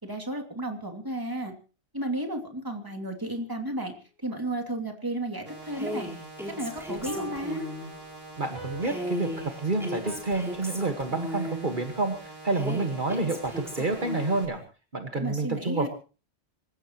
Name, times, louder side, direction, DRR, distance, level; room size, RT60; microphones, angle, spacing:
voice 1, 0.0-1.5 1.9-3.9 4.2-6.1 6.5-7.7 15.1-15.9, right 1 dB, 20° right, 3 dB, 2.7 m, -33 dB
sound 1, 2.8-2.9 7.0-10.2, right 2 dB, 85° right, 4.9 m, -44 dB
sound 2, 5.5-14.5, right 2 dB, 65° right, 5.3 m, -45 dB
Female speech woman speaking, 5.7-7.9 8.8-11.7 12.5-14.4, equal, ahead, 4.3 m, -36 dB
voice 2, 8.4-14.6 14.9-15.9, right 3 dB, 50° right, 4 dB, 1.8 m, -29 dB
26.5 x 15.5 x 3.1 m, 0.36 s
omnidirectional pair, 1.1 m